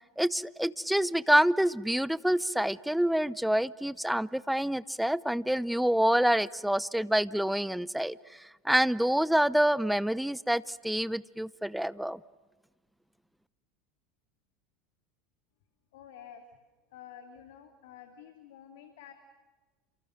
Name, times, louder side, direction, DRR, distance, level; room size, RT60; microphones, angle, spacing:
voice 1, 0.2-8.2 8.6-12.2, right 1 dB, ahead, 19 dB, 0.8 m, -27 dB
voice 2, 15.9-16.4 16.9-19.1, left 9 dB, 60° left, 6 dB, 2.6 m, -50 dB
30.0 x 27.5 x 6.5 m, 1.2 s
figure-of-eight pair, 75°, 0 cm